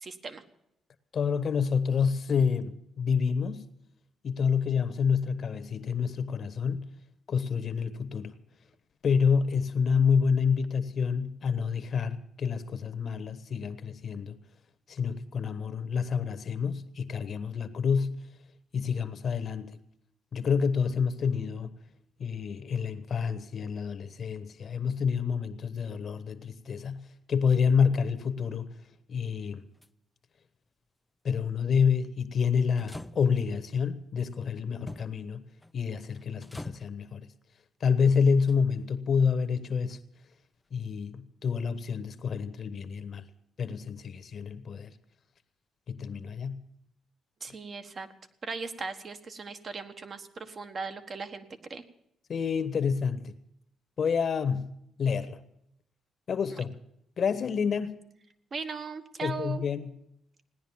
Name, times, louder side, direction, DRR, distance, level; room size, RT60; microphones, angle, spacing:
voice 1, 0.0-0.4 47.4-48.1 48.4-51.8 56.5-56.6 58.5-59.6, right 4 dB, 45° right, 1.4 m, -38 dB
voice 2, 1.1-3.6 4.2-6.9 7.3-8.3 9.0-14.4 14.9-18.2 18.7-19.8 20.3-21.8 22.2-28.7 29.1-29.6 31.2-35.4 35.7-37.3 37.8-40.0 40.7-43.2 43.6-44.9 45.9-46.6 52.3-53.3 54.0-54.7 55.0-55.4 56.3-56.7 57.2-58.0 59.2-59.9, left 6 dB, 50° left, 1.2 m, -28 dB
sound 1, 29.5-29.9 32.8-33.6 34.9-35.2 35.6-35.8 36.2-37.0 38.3-38.9 39.9-40.0, left 1 dB, 5° left, 0.5 m, -45 dB
17.0 x 10.5 x 7.3 m
cardioid pair, 90°, 0 cm